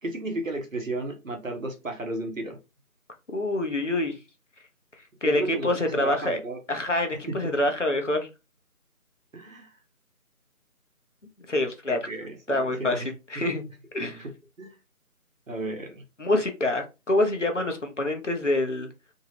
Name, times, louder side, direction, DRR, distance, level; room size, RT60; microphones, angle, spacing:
voice 1, 0.0-2.6 5.2-6.6 7.3-7.4 9.3-9.7 11.9-13.1 14.0-14.3 14.6-14.8 15.5-16.0, right 2 dB, 60° right, 0.9 m, -34 dB
voice 2, 3.3-4.2 5.2-6.4 6.7-8.3 11.5-12.1 12.5-13.0 13.3-13.6 13.9-14.2 16.2-18.9, left 1 dB, 55° left, 0.6 m, -26 dB
2.7 x 2.0 x 2.8 m
figure-of-eight pair, 175°, 45 cm